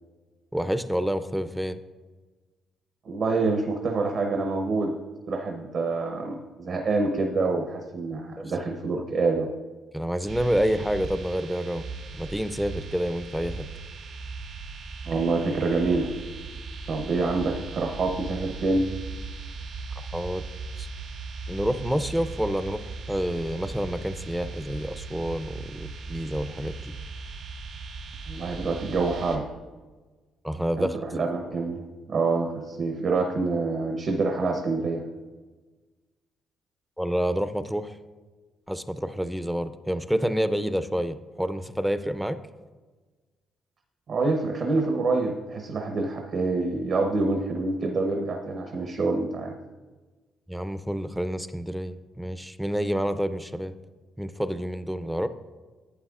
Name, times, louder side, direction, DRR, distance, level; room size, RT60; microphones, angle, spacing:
voice 1, 0.5-1.8 9.0-9.1 9.9-11.9 12.2-13.7 20.0-20.4 20.8-20.9 21.5-26.9 30.4-31.0 37.0-38.0 38.7-42.4 50.5-53.7 54.2-55.3, equal, 5° right, 11 dB, 0.4 m, -28 dB
voice 2, 3.0-4.9 5.3-9.5 15.0-16.1 16.9-18.9 28.3-29.4 30.8-35.0 44.1-49.5, right 3 dB, 60° right, 2 dB, 0.9 m, -26 dB
sound 1, 10.3-29.4, right 4 dB, 75° right, 1.8 m, -38 dB
11.5 x 8.5 x 2.4 m, 1.3 s
cardioid pair, 90°, 0 cm